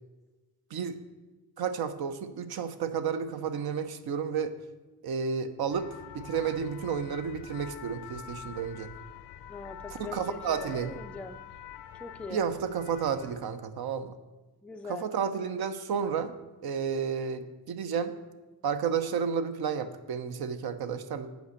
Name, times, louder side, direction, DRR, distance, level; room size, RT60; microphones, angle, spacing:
voice 1, 1.6-4.5 5.0-8.9 9.9-11.0 12.3-14.1 14.9-16.4 16.6-18.2 18.6-21.3, right 6 dB, 60° right, 10 dB, 0.8 m, -31 dB
sound 1, 5.7-13.4, left 9 dB, 75° left, 0.7 m, -46 dB
voice 2, 9.5-11.4 12.0-12.4 14.6-15.1, left 3 dB, 5° left, 6 dB, 0.4 m, -42 dB
8.2 x 5.1 x 6.5 m, 1.2 s
cardioid pair, 90°, 42 cm